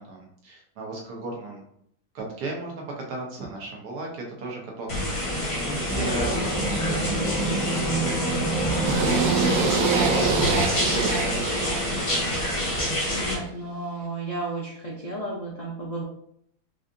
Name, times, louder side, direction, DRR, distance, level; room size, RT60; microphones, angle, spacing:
voice 1, 0.0-1.6 2.1-4.9 5.3-6.3 6.5-7.7 8.7-9.3 9.7-12.0, right 2 dB, 85° right, -1 dB, 1.5 m, -35 dB
sound 1, 4.9-13.3, left 1 dB, 25° left, 0.7 m, -27 dB
voice 2, 5.7-6.6 8.8-8.9 12.7-16.0, right 1 dB, 75° left, -4 dB, 0.3 m, -34 dB
sound 2, 5.7-10.5, right 2 dB, 10° right, 0.5 m, -28 dB
sound 3, 8.8-12.9, right 4 dB, 70° right, 0.9 m, -26 dB
4.9 x 2.6 x 2.5 m, 0.71 s
omnidirectional pair, 1.7 m